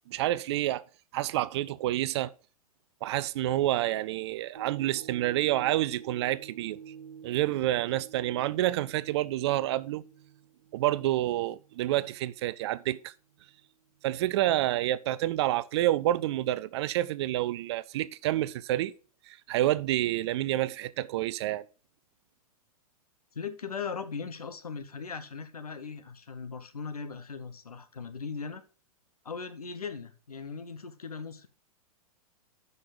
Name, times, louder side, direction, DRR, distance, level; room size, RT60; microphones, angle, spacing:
voice 1, 0.1-0.8 1.1-2.3 3.0-6.8 7.2-10.0 10.7-13.1 14.0-18.9 19.3-21.6, right 14 dB, 45° right, 0.6 m, -28 dB
sound 1, 4.6-13.0 13.5-13.6, right 7 dB, 70° right, 1.5 m, -50 dB
voice 2, 23.3-28.6 29.2-31.5, left 5 dB, 80° left, 1.2 m, -39 dB
12.5 x 5.5 x 3.9 m
figure-of-eight pair, 105°, 19 cm